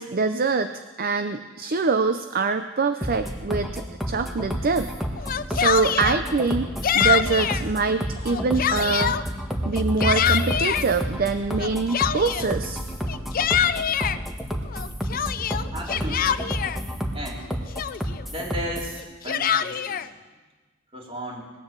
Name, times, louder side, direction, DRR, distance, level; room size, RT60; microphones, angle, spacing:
voice 1, 0.0-4.9 5.5-6.7 6.9-9.3 9.7-12.8, right 4 dB, 50° right, 9 dB, 0.6 m, -24 dB
sound 1, 3.0-19.0, equal, ahead, 1.4 m, -30 dB
Yell, 5.2-6.2 6.8-7.6 8.2-9.2 9.7-10.9 11.6-12.6 13.1-14.2 14.7-16.8 17.4-17.5 17.8-18.2 19.0-20.1, left 9 dB, 45° left, 0.5 m, -24 dB
voice 2, 15.7-16.4 17.1-17.5 18.3-20.1 20.9-21.5, equal, 30° right, -2 dB, 3.4 m, -34 dB
19.0 x 9.6 x 7.5 m, 1.3 s
head